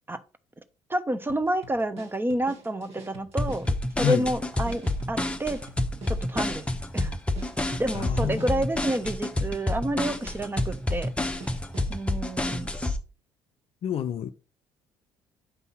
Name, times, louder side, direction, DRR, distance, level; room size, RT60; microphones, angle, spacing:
voice 1, 0.9-5.6 6.1-6.7 6.9-7.1 7.8-11.1 11.9-12.7, right 1 dB, 15° right, 0.9 m, -29 dB
sound 1, 1.3-12.0, right 3 dB, 50° right, 1.7 m, -47 dB
sound 2, 3.4-13.0, left 1 dB, 10° left, 1.0 m, -28 dB
voice 2, 7.9-8.6 13.8-14.3, left 9 dB, 45° left, 0.5 m, -28 dB
8.1 x 5.4 x 4.0 m
figure-of-eight pair, 50°, 13 cm